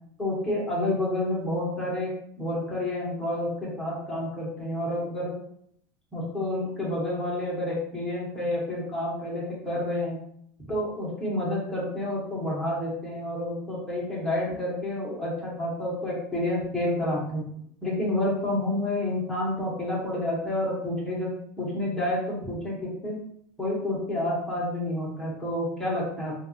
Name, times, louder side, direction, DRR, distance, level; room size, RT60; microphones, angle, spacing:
voice 1, 0.2-2.1 2.4-5.4 6.1-10.2 10.7-17.4 17.8-23.2 23.6-26.3, left 1 dB, 5° left, -6 dB, 1.4 m, -29 dB
3.4 x 2.7 x 3.0 m, 0.68 s
supercardioid pair, 140°, 8 cm